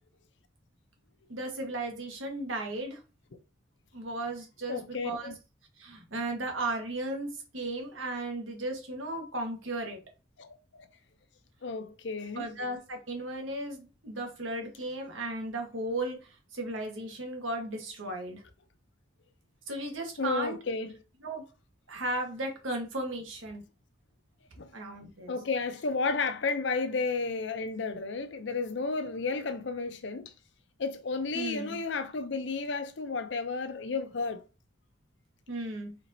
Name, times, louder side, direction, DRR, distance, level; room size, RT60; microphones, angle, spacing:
voice 1, 1.3-3.0 3.9-5.3 5.8-10.0 12.4-18.4 19.7-20.6 21.2-21.5 21.9-23.6 24.7-25.3 31.3-31.8 35.5-36.0, right 2 dB, 80° right, 1.3 m, -35 dB
voice 2, 4.7-5.3 10.4-10.9 11.6-12.5 20.2-21.0 24.6-24.7 25.3-30.3 30.8-34.4, left 4 dB, 65° left, 0.6 m, -32 dB
4.4 x 4.0 x 2.7 m
head